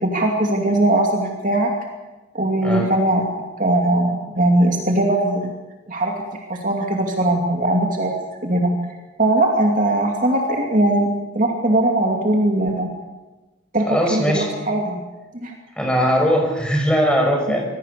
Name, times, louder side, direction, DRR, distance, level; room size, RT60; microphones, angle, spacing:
voice 1, 0.0-1.7 2.3-3.2 3.6-5.5 5.9-8.1 8.4-8.7 9.2-12.9 13.7-15.0 15.3-15.5, right 1 dB, 40° right, 2 dB, 2.7 m, -20 dB
voice 2, 13.9-14.5 15.8-17.7, equal, 5° left, 1 dB, 5.6 m, -19 dB
26.5 x 21.5 x 6.9 m, 1.1 s
head